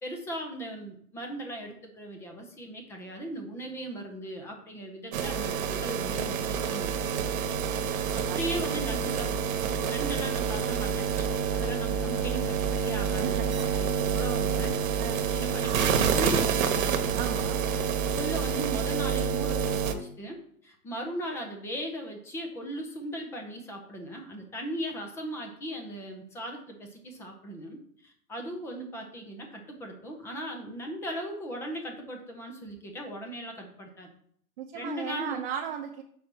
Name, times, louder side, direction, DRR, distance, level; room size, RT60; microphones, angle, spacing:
voice 1, 0.0-6.9 8.1-9.3 9.8-11.3 11.5-14.8 15.3-17.0 18.1-20.4 20.6-34.1 34.7-35.4, equal, 5° left, 3 dB, 0.5 m, -38 dB
sound 1, 5.1-19.9, right 7 dB, 65° right, 1.1 m, -28 dB
voice 2, 8.2-9.0 13.2-13.9 15.0-15.2 17.1-17.7 34.6-36.0, right 8 dB, 40° right, 3 dB, 0.7 m, -37 dB
5.3 x 4.2 x 6.0 m, 0.64 s
hypercardioid pair, 140°, 44 cm